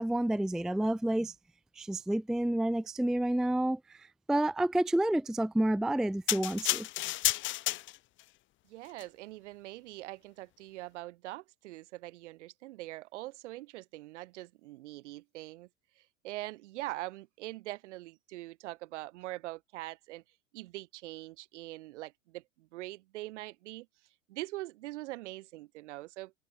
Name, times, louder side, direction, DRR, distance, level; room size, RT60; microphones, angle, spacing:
voice 1, 0.0-1.3 1.8-6.9, right 1 dB, ahead, 0.5 m, -29 dB
sound 1, 6.3-8.2 8.9-9.0, left 16 dB, 30° left, 0.8 m, -31 dB
voice 2, 8.7-15.7 16.0-20.2 20.5-23.9 24.3-26.3, right 18 dB, 60° right, 3.1 m, -43 dB
open air
figure-of-eight pair, 95°, 41 cm